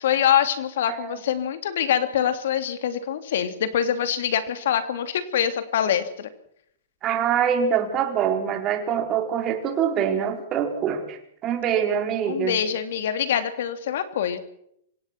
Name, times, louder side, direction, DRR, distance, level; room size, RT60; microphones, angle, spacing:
voice 1, 0.0-6.3 12.3-14.4, left 9 dB, 70° left, 10 dB, 3.1 m, -24 dB
voice 2, 7.0-12.6, right 8 dB, 30° right, 4 dB, 4.6 m, -24 dB
26.0 x 17.5 x 6.1 m, 0.71 s
hypercardioid pair, 140°, 0 cm